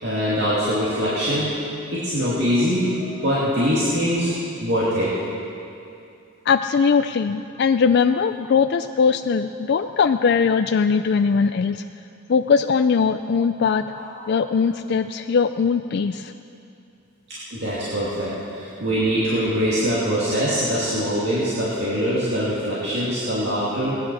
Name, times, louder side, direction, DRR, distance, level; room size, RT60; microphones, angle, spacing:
voice 1, 0.0-1.6 1.9-4.3 4.6-5.2 13.9-14.3 17.3-24.0, equal, 55° right, -9 dB, 2.7 m, -23 dB
voice 2, 6.5-11.8 12.3-13.8 14.3-16.3, left 5 dB, 50° left, 8 dB, 0.3 m, -20 dB
18.5 x 10.5 x 6.4 m, 2.6 s
head